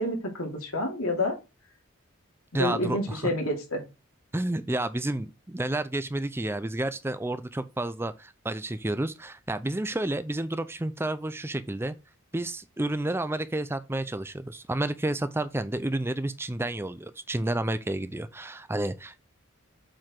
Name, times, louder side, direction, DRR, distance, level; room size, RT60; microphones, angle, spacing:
voice 1, 0.0-1.4 2.5-3.8, left 1 dB, 90° left, 2.8 m, -28 dB
voice 2, 2.5-3.3 4.3-11.9 12.3-19.2, right 1 dB, 10° right, 0.4 m, -30 dB
7.5 x 4.7 x 3.8 m
head